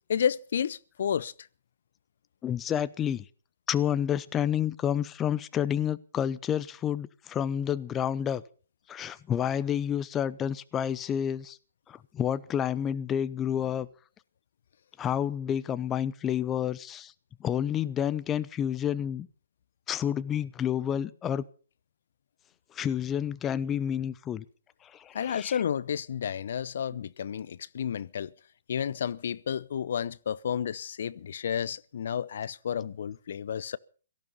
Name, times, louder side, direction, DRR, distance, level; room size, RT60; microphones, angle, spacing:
voice 1, 0.1-1.3 25.1-28.3 28.7-33.8, left 8 dB, 60° left, 0.7 m, -31 dB
voice 2, 2.4-3.2 3.7-8.4 8.9-11.6 11.9-13.9 15.0-17.1 17.4-19.3 19.9-21.4 22.7-24.4 24.8-25.6, left 9 dB, 15° left, 0.8 m, -29 dB
17.5 x 14.0 x 5.5 m
figure-of-eight pair, 135°, 0 cm